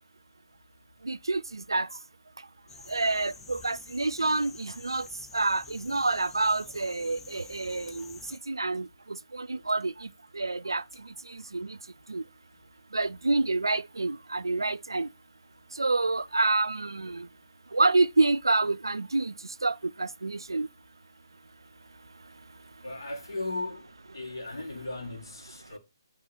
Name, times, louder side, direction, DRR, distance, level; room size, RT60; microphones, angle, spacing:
voice 1, 1.1-1.9 2.9-5.1 5.3-8.2 8.5-8.9 9.3-9.9 10.4-10.8 11.5-11.7 12.1-12.2 12.9-15.1 15.8-17.3 17.7-19.3 19.6-20.7, right 3 dB, 75° right, 0.3 m, -27 dB
sound 1, 2.7-8.4, left 4 dB, 10° left, 0.6 m, -49 dB
voice 2, 22.8-23.9 24.1-25.8, left 2 dB, 65° left, 1.7 m, -36 dB
8.6 x 3.1 x 5.4 m
figure-of-eight pair, 140°, 2 cm